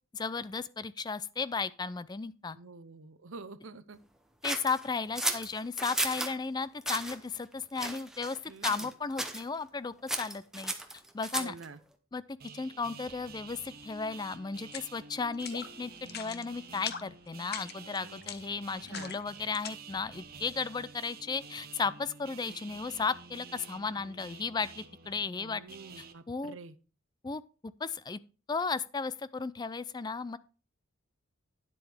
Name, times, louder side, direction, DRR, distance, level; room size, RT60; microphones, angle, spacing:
voice 1, 0.1-2.6 4.4-10.7 11.1-11.5 12.1-25.6 26.0-26.6 27.2-28.2 28.5-30.4, left 4 dB, 20° left, 0.3 m, -35 dB
voice 2, 2.5-4.0 8.5-8.9 11.4-11.8 18.9-19.2 25.3-26.8, right 3 dB, 70° right, 0.8 m, -47 dB
sound 1, 4.4-6.3 6.8-7.2 7.8-8.4 8.6-8.9 9.2-9.4 10.1-11.6, right 1 dB, ahead, 0.9 m, -34 dB
sound 2, 12.4-26.1, right 5 dB, 45° right, 1.0 m, -50 dB
sound 3, 14.6-14.9 15.3-15.7 16.0-16.4 16.7-17.1 17.4-19.7, left 8 dB, 50° left, 0.9 m, -41 dB
10.0 x 7.9 x 3.5 m
head